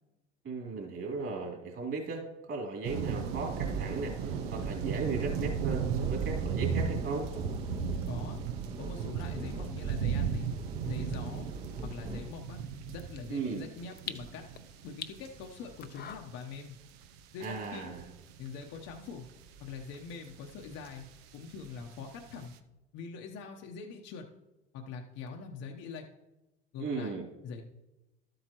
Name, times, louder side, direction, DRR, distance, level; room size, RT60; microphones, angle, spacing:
voice 1, 0.4-7.3 13.3-13.6 17.4-18.1 26.8-27.2, right 4 dB, 45° right, 0 dB, 3.0 m, -37 dB
sound 1, 2.8-16.6 17.0-17.6 17.9-22.4, right 6 dB, 85° right, 0.7 m, -36 dB
sound 2, 2.9-12.3, right 3 dB, 20° right, 0.7 m, -43 dB
voice 2, 8.1-8.4 8.8-10.5 10.8-11.5 11.8-12.6 12.9-14.4 14.8-16.8 17.3-17.9 18.4-19.3 19.6-21.1 21.3-22.5 22.9-24.3 24.7-26.1 26.7-27.6, left 5 dB, 60° left, 2 dB, 1.0 m, -43 dB
sound 3, 10.0-16.1, left 9 dB, 35° left, 0.6 m, -49 dB
12.0 x 7.8 x 3.0 m, 1.0 s
supercardioid pair, 95°, 30 cm